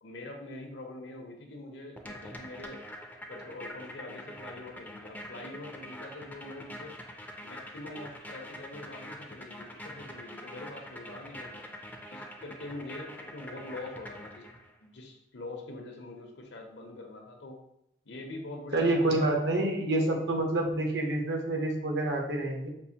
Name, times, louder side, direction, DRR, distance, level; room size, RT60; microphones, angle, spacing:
voice 1, 0.0-2.8 3.3-7.0 7.4-11.6 12.1-14.5 14.8-17.6 18.0-19.3, left 2 dB, 75° left, 2 dB, 0.8 m, -44 dB
sound 1, 2.0-14.8, equal, 10° left, 0.4 m, -45 dB
voice 2, 18.7-22.7, right 2 dB, 65° right, 1 dB, 0.8 m, -27 dB
5.3 x 2.5 x 2.8 m, 0.79 s
head